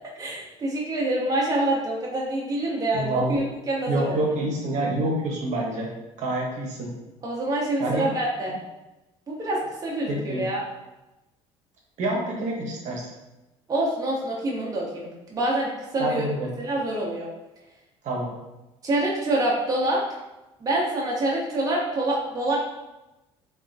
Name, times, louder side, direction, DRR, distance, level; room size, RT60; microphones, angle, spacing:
voice 1, 0.2-4.1 7.2-8.5 9.3-10.6 13.7-16.2 16.6-17.3 18.8-20.0 20.6-22.6, right 1 dB, 25° right, -4 dB, 0.6 m, -26 dB
voice 2, 2.9-3.4 3.9-5.9 6.2-6.9 7.8-8.1 10.1-10.4 12.0-13.1 16.0-16.5 18.0-18.3, right 2 dB, 55° right, -2 dB, 0.8 m, -27 dB
2.8 x 2.3 x 2.5 m, 1.0 s
hypercardioid pair, 70°, 15 cm